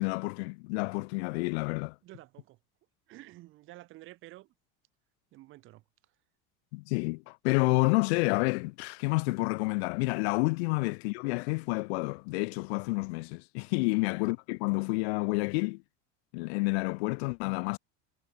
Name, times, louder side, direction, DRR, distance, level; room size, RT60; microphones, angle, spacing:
voice 1, 0.0-1.9 6.7-15.8 16.3-17.8, left 28 dB, 65° left, 0.7 m, -29 dB
voice 2, 2.0-2.6 3.1-4.5 5.3-5.8 13.9-14.0, right 17 dB, 35° right, 2.2 m, -51 dB
cardioid pair, 180°, 35 cm